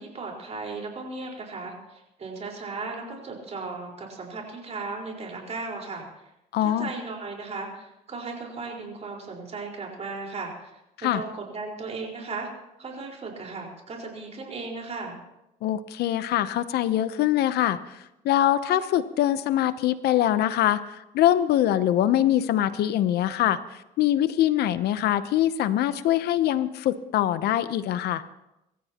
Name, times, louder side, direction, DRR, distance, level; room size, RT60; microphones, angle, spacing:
voice 1, 0.0-6.0 6.6-12.5 12.8-15.2, right 3 dB, 40° right, 0 dB, 4.5 m, -36 dB
voice 2, 6.5-6.9 11.0-11.2 15.6-18.0 18.2-23.6 24.0-28.2, left 12 dB, 75° left, 13 dB, 0.8 m, -23 dB
26.0 x 14.5 x 3.0 m, 0.91 s
cardioid pair, 110°, 17 cm